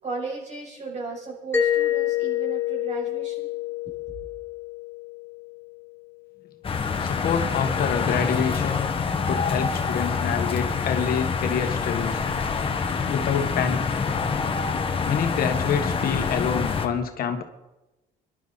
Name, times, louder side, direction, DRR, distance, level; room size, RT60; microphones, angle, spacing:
voice 1, 0.0-3.5, right 3 dB, 45° right, -2 dB, 7.4 m, -35 dB
Mallet percussion, 1.5-6.1, left 10 dB, 10° left, 1.3 m, -28 dB
sound 1, 6.6-16.9, left 5 dB, 30° left, 1.6 m, -26 dB
voice 2, 7.0-8.9 9.3-12.2 13.1-14.0 15.0-17.4, left 7 dB, 60° left, 5 dB, 1.6 m, -27 dB
24.5 x 11.5 x 4.2 m, 1.0 s
cardioid pair, 110°, 17 cm